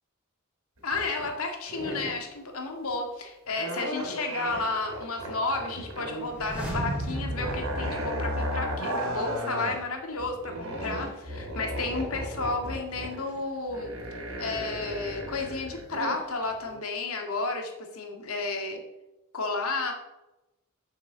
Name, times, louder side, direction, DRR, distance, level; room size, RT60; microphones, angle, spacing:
voice 1, 0.8-13.9 14.4-18.8 19.3-19.9, left 3 dB, 80° left, 3 dB, 2.1 m, -32 dB
sound 1, 0.8-1.4 1.7-2.3 3.5-6.3 6.6-9.8 10.2-16.2 16.6-16.8, equal, 75° right, 3.2 m, -35 dB
sound 2, 6.2-9.1 9.4-9.5, right 1 dB, 5° right, 3.3 m, -35 dB
7.6 x 6.8 x 7.4 m, 0.99 s
head